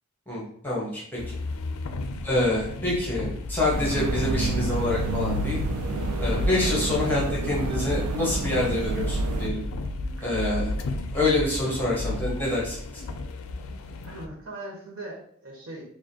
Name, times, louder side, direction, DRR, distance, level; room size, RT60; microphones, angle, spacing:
voice 1, 0.3-1.2 2.2-5.6 6.2-9.6 10.2-10.7 11.1-12.8, left 1 dB, 10° left, -5 dB, 1.0 m, -26 dB
sound 1, 1.2-14.3, left 2 dB, 80° left, 0.4 m, -32 dB
sound 2, 3.7-9.5, right 4 dB, 90° right, 0.4 m, -31 dB
voice 2, 14.0-15.8, right 1 dB, 70° right, -3 dB, 1.2 m, -40 dB
4.7 x 2.2 x 2.8 m, 0.63 s
head